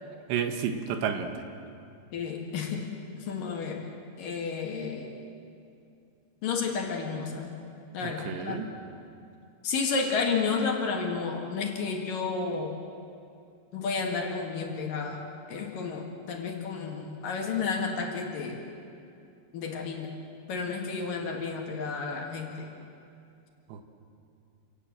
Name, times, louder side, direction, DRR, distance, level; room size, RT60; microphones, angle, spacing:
voice 1, 0.3-1.4 8.0-8.7 23.7-23.8, right 7 dB, 85° right, 7 dB, 3.6 m, -31 dB
voice 2, 2.1-2.9 3.3-3.8 4.2-5.2 6.4-7.6 7.9-8.6 9.6-12.7 13.7-15.2 15.5-18.6 19.5-20.1 20.5-22.7, left 5 dB, 60° left, 2 dB, 3.2 m, -31 dB
27.5 x 18.0 x 7.7 m, 2.5 s
omnidirectional pair, 5.0 m